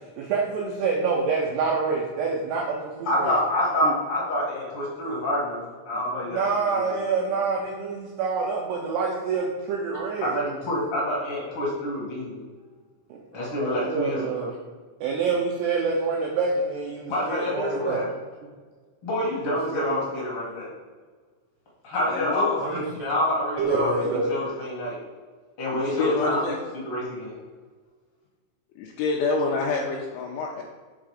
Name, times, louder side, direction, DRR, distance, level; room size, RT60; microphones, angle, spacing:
voice 1, 0.2-3.3 3.8-3.9 6.3-10.4 13.1-14.5 15.0-18.0 19.5-20.0 22.6-22.8 23.6-24.4, right 4 dB, 85° right, -1 dB, 2.3 m, -27 dB
voice 2, 3.0-6.9 10.2-12.4 13.3-14.5 17.1-18.1 19.0-20.7 21.8-25.0 25.6-26.4 26.7-27.3, left 1 dB, 55° left, -6 dB, 1.5 m, -27 dB
voice 3, 22.2-22.6 25.7-26.6 28.8-30.6, left 4 dB, 80° left, -2 dB, 2.8 m, -27 dB
8.3 x 3.8 x 4.9 m, 1.5 s
omnidirectional pair, 5.8 m